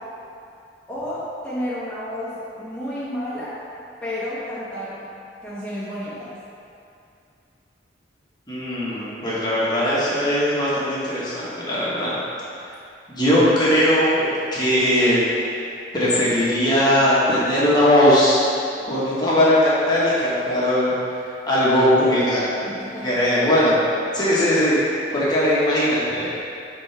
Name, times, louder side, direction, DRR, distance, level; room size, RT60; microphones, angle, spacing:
voice 1, 0.9-3.6 4.0-5.1 5.4-6.3 18.7-18.8 22.6-23.2, equal, 5° left, -12 dB, 1.3 m, -31 dB
voice 2, 8.5-12.1 12.6-12.7 13.1-15.2 15.9-18.4 18.9-20.9 21.5-22.7 23.0-23.8 24.1-24.8 25.1-26.3, equal, 25° left, -9 dB, 1.4 m, -19 dB
10.0 x 3.7 x 3.4 m, 2.5 s
head